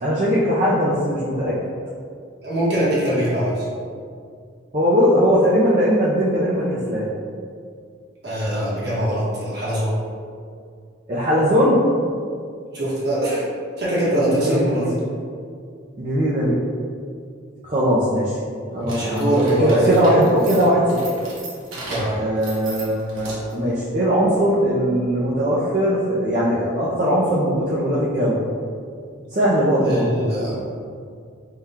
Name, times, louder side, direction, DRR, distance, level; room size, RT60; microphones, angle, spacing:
voice 1, 0.0-1.6 4.7-7.1 11.1-11.8 14.1-14.9 16.0-16.6 17.6-18.4 18.7-21.0 22.1-28.4 29.3-30.1, equal, 35° right, -8 dB, 0.5 m, -19 dB
voice 2, 2.4-3.7 8.2-9.9 12.7-13.4 13.8-14.9 18.8-20.0 21.9-22.2 29.8-30.6, right 1 dB, 50° right, -8 dB, 1.1 m, -22 dB
sound 1, 18.8-23.7, right 2 dB, 75° right, 1.0 m, -35 dB
3.6 x 2.3 x 4.2 m, 2.2 s
head